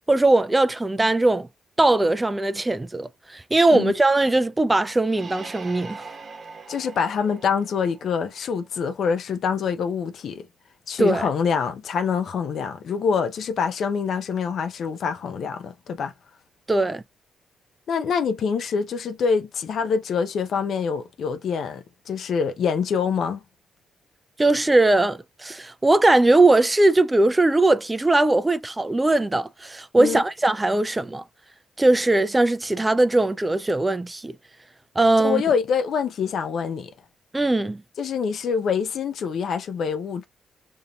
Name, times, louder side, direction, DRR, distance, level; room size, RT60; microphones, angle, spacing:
voice 1, 0.1-1.5 1.8-6.0 11.0-11.3 16.7-17.0 24.4-31.2 31.8-34.3 35.0-35.4 37.3-37.8, right 2 dB, 15° right, 0.3 m, -20 dB
sound 1, 5.1-8.7, right 4 dB, 45° right, 1.0 m, -42 dB
voice 2, 6.7-10.4 10.9-16.1 17.9-23.4 30.0-30.2 35.2-36.9 38.0-40.3, left 6 dB, 65° left, 0.6 m, -25 dB
5.3 x 2.7 x 2.3 m
cardioid pair, 70°, 0 cm